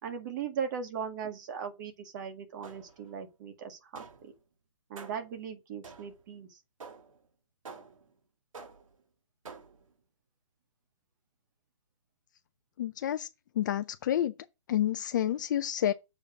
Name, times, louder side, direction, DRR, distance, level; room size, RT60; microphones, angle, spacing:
voice 1, 0.0-4.3 4.9-6.6, right 7 dB, 35° right, 1.9 m, -38 dB
sound 1, 2.6-3.1 4.0-4.4 5.0-5.4 5.8-6.3 6.8-7.2 7.7-8.1 8.5-9.0 9.5-9.9, right 4 dB, 75° right, 1.7 m, -49 dB
voice 2, 12.8-13.3 13.6-14.3 14.7-15.9, left 11 dB, 35° left, 0.5 m, -29 dB
7.1 x 4.9 x 4.9 m
hypercardioid pair, 155°, 17 cm